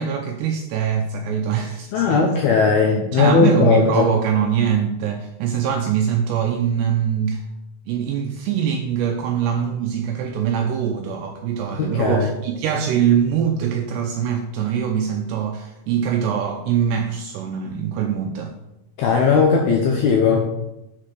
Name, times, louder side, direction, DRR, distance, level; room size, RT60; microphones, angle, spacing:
voice 1, 0.0-2.2 2.9-7.5 7.9-18.5, right 8 dB, 85° right, 4 dB, 2.4 m, -23 dB
voice 2, 1.9-4.1 11.7-12.3 19.0-20.5, left 5 dB, 80° left, 1 dB, 2.2 m, -18 dB
7.5 x 4.3 x 6.5 m, 0.93 s
omnidirectional pair, 5.4 m